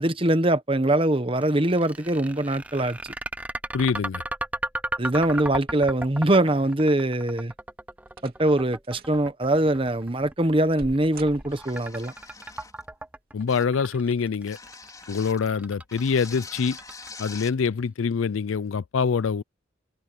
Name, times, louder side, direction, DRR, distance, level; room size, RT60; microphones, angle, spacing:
voice 1, 0.0-3.1 5.0-7.5 8.2-12.1, right 1 dB, 25° right, 1.1 m, -23 dB
sound 1, 1.4-17.5, right 1 dB, 5° right, 0.6 m, -35 dB
voice 2, 3.7-4.2 13.3-14.6 15.1-16.8 17.2-19.4, left 5 dB, 85° left, 0.5 m, -25 dB
sound 2, 7.3-7.6 8.1-8.5 8.8-9.2 9.7-11.9 13.1-13.7 14.2-14.3 15.0-15.2 15.6-15.7, right 2 dB, 50° right, 3.2 m, -45 dB
sound 3, 11.5-12.9 13.5-13.8 14.5-15.5 15.9-17.6, left 4 dB, 20° left, 4.7 m, -44 dB
head